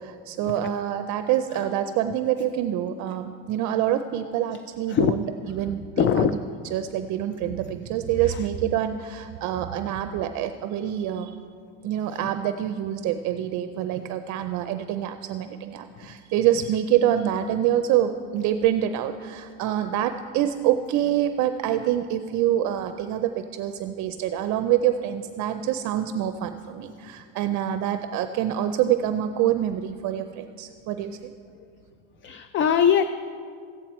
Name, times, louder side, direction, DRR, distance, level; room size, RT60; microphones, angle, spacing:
voice 1, 0.0-6.3 6.7-11.3 11.8-31.3, right 11 dB, 60° right, 9 dB, 0.5 m, -26 dB
voice 2, 6.0-6.4 8.2-8.4 31.5-31.7 32.2-33.0, left 8 dB, 35° left, 11 dB, 0.4 m, -22 dB
14.5 x 9.1 x 4.3 m, 2.3 s
cardioid pair, 125°, 33 cm